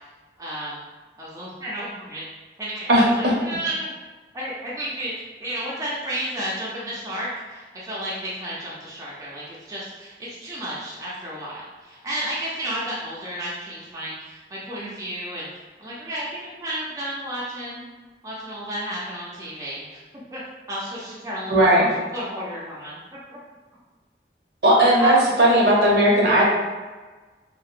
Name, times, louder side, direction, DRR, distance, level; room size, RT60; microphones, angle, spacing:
voice 1, 0.4-0.8 1.2-2.2 2.6-3.9 4.3-5.1 5.4-10.2 10.4-15.5 15.8-17.8 18.2-20.0 20.3-20.4 20.7-21.6 22.1-23.0 23.3-23.4 25.0-25.1, right 1 dB, 20° right, -7 dB, 0.4 m, -32 dB
voice 2, 2.9-3.3 21.5-21.9 24.6-26.4, right 1 dB, 65° right, -3 dB, 0.6 m, -16 dB
2.7 x 2.0 x 2.4 m, 1.3 s
head